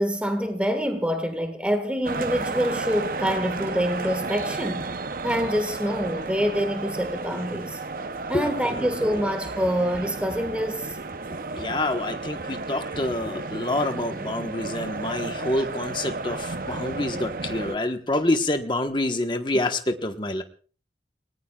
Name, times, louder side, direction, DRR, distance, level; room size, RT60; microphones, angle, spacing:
voice 1, 0.0-4.9 5.2-7.8 8.3-11.0, equal, 5° right, 1.6 m, -26 dB
sound 1, 2.0-17.8, right 3 dB, 50° right, 0.8 m, -33 dB
voice 2, 8.3-8.9 11.5-20.4, left 1 dB, 25° left, 1.2 m, -27 dB
29.5 x 19.0 x 2.4 m
head